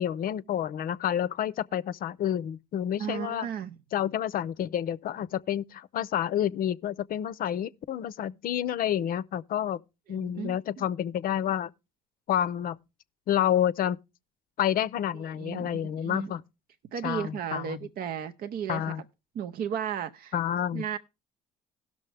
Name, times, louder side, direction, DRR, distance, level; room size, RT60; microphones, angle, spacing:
voice 1, 0.0-3.5 3.9-9.8 10.1-11.7 12.3-12.8 13.3-14.0 14.6-16.4 17.0-17.8 18.7-19.0 20.3-20.8, left 10 dB, 55° left, 0.5 m, -29 dB
voice 2, 3.0-3.8 10.1-10.9 15.4-16.3 16.9-19.0 19.3-20.3 20.7-21.0, right 8 dB, 60° right, 0.6 m, -34 dB
17.5 x 6.3 x 3.3 m
hypercardioid pair, 60°, 18 cm